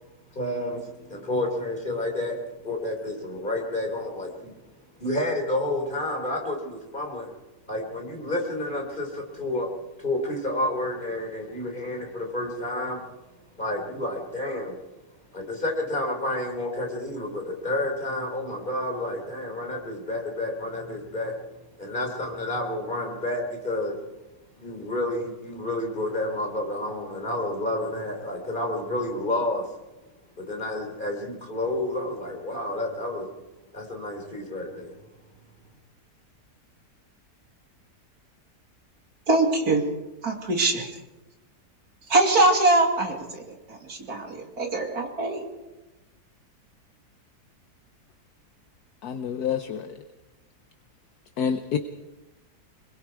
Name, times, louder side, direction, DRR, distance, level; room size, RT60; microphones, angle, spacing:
voice 1, 0.3-4.5 5.0-7.3 7.7-9.7 10.0-13.1 13.5-14.8 15.3-21.4 21.8-24.0 24.6-29.7 30.4-33.3 33.7-34.9, left 1 dB, 30° left, 2 dB, 4.1 m, -30 dB
voice 2, 39.3-39.9 40.2-40.9 42.1-43.4 43.7-45.5, right 2 dB, 65° right, 2 dB, 3.2 m, -23 dB
voice 3, 49.0-50.0 51.4-51.8, left 8 dB, 70° left, 9 dB, 1.4 m, -28 dB
24.5 x 22.0 x 4.8 m, 1.0 s
omnidirectional pair, 1.7 m